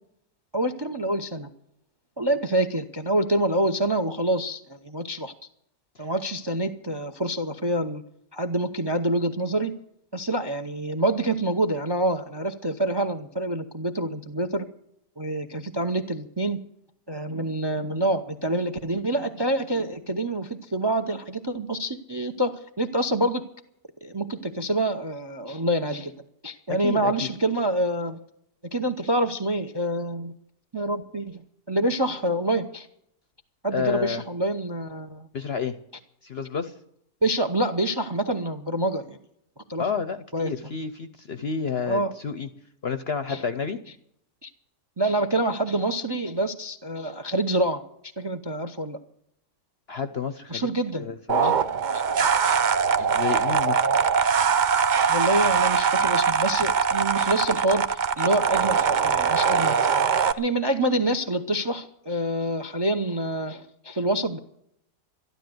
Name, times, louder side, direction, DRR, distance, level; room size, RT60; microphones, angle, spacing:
voice 1, 0.5-1.5 2.2-5.3 6.0-8.0 8.3-9.7 10.1-14.7 15.2-16.6 17.1-23.4 24.0-26.1 26.4-28.2 28.7-30.3 30.7-32.9 33.6-35.3 37.2-39.2 39.7-39.9 40.3-40.5 41.9-42.1 43.3-43.4 44.4-44.5 45.0-47.8 48.2-49.0 50.5-51.1 51.9-52.0 52.4-52.5 55.1-59.8 60.3-64.4, right 1 dB, 25° right, 10 dB, 0.5 m, -26 dB
voice 2, 26.7-27.3 33.7-34.2 35.3-35.7 36.2-36.7 39.8-42.5 42.8-43.8 49.9-50.6 51.0-51.5 53.0-53.8, left 6 dB, 50° left, 11 dB, 0.8 m, -30 dB
sound 1, 51.3-60.3, right 6 dB, 80° right, 0.4 m, -22 dB
13.0 x 12.5 x 7.8 m, 0.74 s
omnidirectional pair, 1.7 m